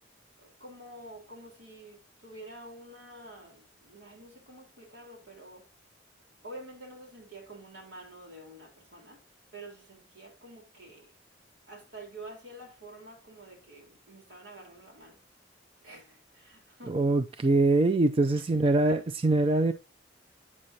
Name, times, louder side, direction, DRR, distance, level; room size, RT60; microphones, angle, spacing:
voice 1, 0.4-5.6 6.4-9.2 9.5-11.1 11.7-15.2 15.8-17.0 18.6-19.0, right 1 dB, 75° right, 3.5 m, -48 dB
voice 2, 16.9-19.7, right 2 dB, 30° right, 0.4 m, -23 dB
8.5 x 6.5 x 2.7 m
head